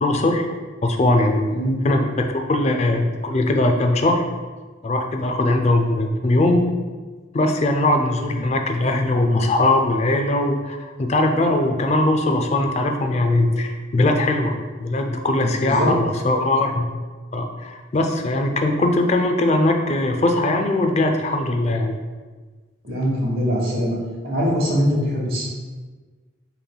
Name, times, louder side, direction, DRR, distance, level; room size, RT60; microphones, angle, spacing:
voice 1, 0.0-0.5 0.8-1.5 1.8-4.2 4.8-6.7 7.3-16.9 17.3-22.0, left 2 dB, 35° left, 4 dB, 0.3 m, -20 dB
voice 2, 15.6-15.9 22.8-24.0 24.2-25.5, equal, 50° right, -4 dB, 1.1 m, -22 dB
5.1 x 3.2 x 2.2 m, 1.4 s
head